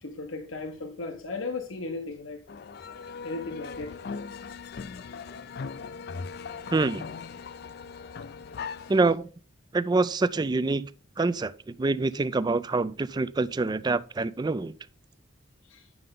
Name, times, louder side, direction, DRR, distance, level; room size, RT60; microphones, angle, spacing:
voice 1, 0.0-2.4 3.2-4.0 5.1-5.2 8.5-8.9 15.7-15.8, left 3 dB, 90° left, 1.0 m, -36 dB
sound 1, 2.5-9.2, left 5 dB, 55° left, 0.4 m, -39 dB
voice 2, 6.7-7.0 8.9-9.3 9.7-10.9 11.2-11.5 11.8-14.7, right 3 dB, 20° right, 0.3 m, -25 dB
9.3 x 6.6 x 3.7 m
head